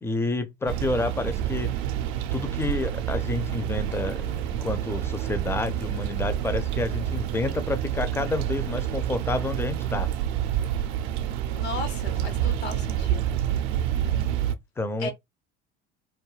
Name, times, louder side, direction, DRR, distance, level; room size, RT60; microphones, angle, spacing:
voice 1, 0.0-1.8 2.3-10.1 14.8-15.1, left 3 dB, 10° left, 0.4 m, -29 dB
sound 1, 0.7-14.5, right 11 dB, 65° right, 0.5 m, -28 dB
voice 2, 11.5-13.2 15.0-15.1, left 4 dB, 85° left, 0.9 m, -35 dB
2.3 x 2.2 x 3.1 m
hypercardioid pair, 65°, 31 cm